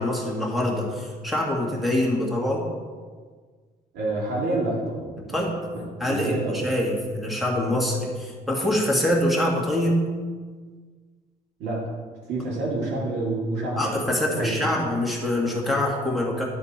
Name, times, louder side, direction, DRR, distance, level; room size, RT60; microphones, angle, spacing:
voice 1, 0.0-2.7 5.2-5.6 6.0-10.0 13.7-16.4, left 1 dB, ahead, -3 dB, 2.0 m, -25 dB
voice 2, 3.9-5.4 5.7-5.8 6.1-6.6 11.6-12.0 12.3-14.7, right 2 dB, 80° right, -4 dB, 2.2 m, -28 dB
12.0 x 4.3 x 4.3 m, 1.5 s
cardioid pair, 110°, 17 cm